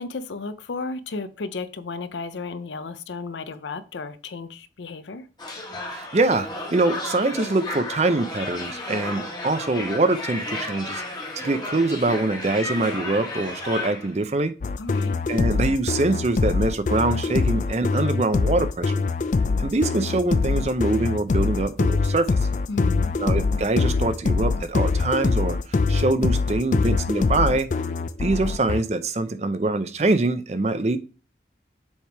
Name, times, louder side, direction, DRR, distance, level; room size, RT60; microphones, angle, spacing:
voice 1, 0.0-5.3 14.8-15.2 22.7-23.1, left 3 dB, 85° left, 0.6 m, -33 dB
sound 1, 5.4-14.2, left 2 dB, 25° left, 1.4 m, -33 dB
voice 2, 5.9-14.5 15.3-19.0 19.6-22.3 23.2-27.7 28.2-31.0, right 2 dB, 35° right, 0.5 m, -24 dB
Dance Beat, 14.6-28.8, left 4 dB, 45° left, 0.3 m, -23 dB
7.2 x 3.5 x 4.6 m
head